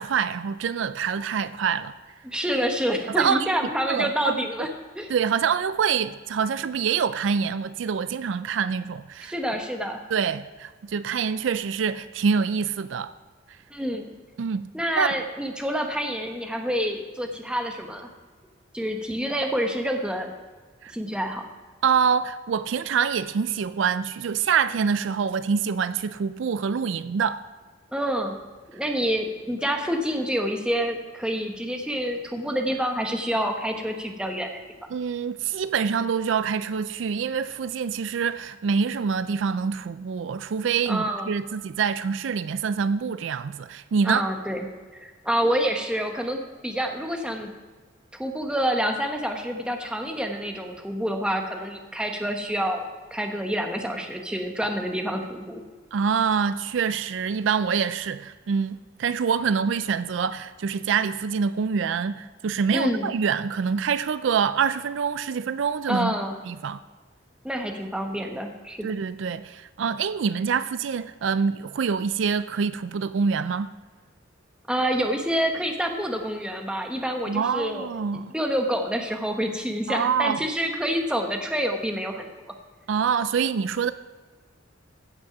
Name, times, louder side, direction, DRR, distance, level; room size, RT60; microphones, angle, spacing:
voice 1, 0.0-1.9 3.2-3.5 3.8-4.7 5.1-9.3 10.1-13.1 14.4-14.7 15.0-15.2 20.8-20.9 21.8-27.4 34.9-44.2 55.9-66.1 66.5-66.8 68.8-73.7 77.3-78.3 79.9-80.4 82.9-83.9, right 6 dB, 70° right, 0.4 m, -25 dB
voice 2, 2.2-4.7 4.9-5.1 9.2-10.0 13.7-14.1 14.7-18.1 18.7-20.3 20.9-21.5 27.9-28.4 28.7-34.5 40.9-41.3 44.0-44.7 44.9-47.5 48.1-52.8 53.1-55.6 62.7-63.1 65.9-66.4 67.4-68.9 74.7-77.9 78.3-82.3, equal, 5° right, 1.1 m, -27 dB
15.5 x 6.2 x 5.8 m
head